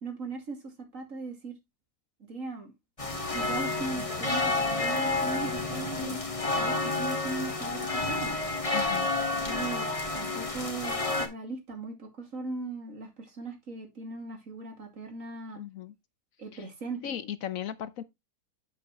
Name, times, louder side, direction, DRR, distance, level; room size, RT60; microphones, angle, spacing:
voice 1, 0.0-1.6 2.3-2.7 3.1-6.2 6.5-8.4 9.4-15.6 16.4-17.0, right 3 dB, 55° right, 2.8 m, -39 dB
sound 1, 3.0-11.3, left 3 dB, 20° left, 1.6 m, -30 dB
voice 2, 8.7-9.1 15.5-15.9 17.0-18.0, left 10 dB, 65° left, 1.1 m, -36 dB
7.9 x 7.9 x 3.1 m
omnidirectional pair, 1.6 m